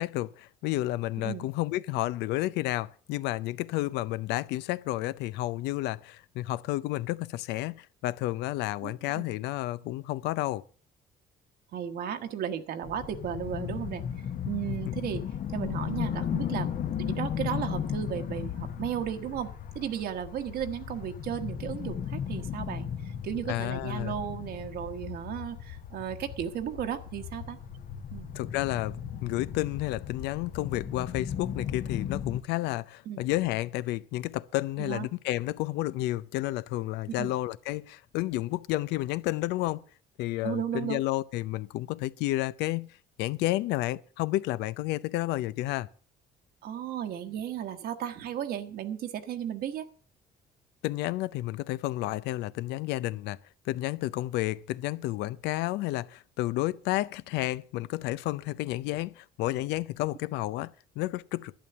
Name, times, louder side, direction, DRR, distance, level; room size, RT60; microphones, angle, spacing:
voice 1, 0.0-10.6 23.5-24.1 28.3-39.8 40.2-42.9 43.2-45.9 50.8-53.4 53.7-61.5, left 17 dB, 90° left, 0.6 m, -31 dB
voice 2, 1.2-1.5 8.8-9.2 11.7-14.0 14.4-15.2 15.5-16.7 17.0-27.6 28.1-28.3 33.1-33.2 34.8-35.1 37.1-37.3 40.4-41.0 46.6-49.9, right 9 dB, 65° right, 1.3 m, -35 dB
sound 1, 12.8-32.4, left 9 dB, 55° left, 1.1 m, -36 dB
11.5 x 9.0 x 6.8 m
cardioid pair, 110°, 17 cm